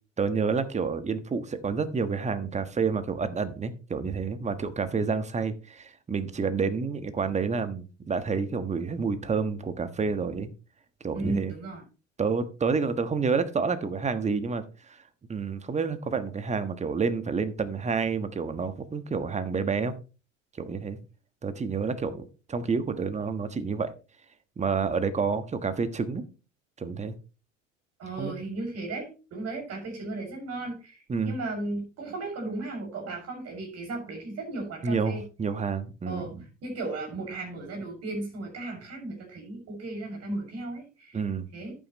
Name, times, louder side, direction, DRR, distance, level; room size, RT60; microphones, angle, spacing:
voice 1, 0.2-10.5 11.0-11.5 12.2-15.0 15.3-19.9 20.6-21.0 21.4-23.9 24.6-26.2 26.8-27.1 28.2-28.3 31.1-31.4 34.8-36.4 41.1-41.5, right 5 dB, 20° right, 11 dB, 1.4 m, -29 dB
voice 2, 11.1-11.8 28.0-35.2 36.1-36.3 36.6-41.2 41.5-41.7, right 2 dB, 40° right, 1 dB, 6.6 m, -35 dB
11.0 x 9.2 x 3.1 m, 0.32 s
hypercardioid pair, 75°, 37 cm